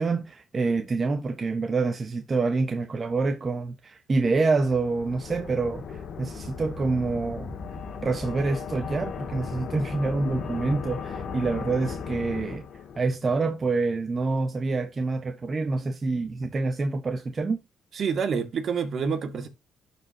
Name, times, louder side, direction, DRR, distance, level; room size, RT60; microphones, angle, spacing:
voice 1, 0.0-7.5 8.0-12.7 13.0-17.6, right 3 dB, 35° right, 1.1 m, -27 dB
sound 1, 4.6-13.2, left 5 dB, 65° left, 1.9 m, -36 dB
voice 2, 18.0-19.5, right 6 dB, 55° right, 2.0 m, -27 dB
12.0 x 4.9 x 2.8 m
cardioid pair, 90°, 0 cm